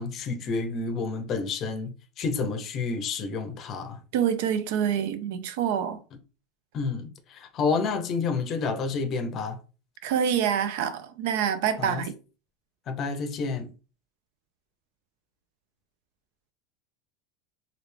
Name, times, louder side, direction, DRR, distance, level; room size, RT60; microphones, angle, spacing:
voice 1, 0.0-4.0 6.7-9.6 11.8-12.0 12.9-13.7, left 4 dB, 35° left, 0.6 m, -29 dB
voice 2, 4.1-6.0 10.0-12.1, right 8 dB, 75° right, 0.5 m, -26 dB
3.3 x 2.4 x 3.3 m
supercardioid pair, 145°, 0 cm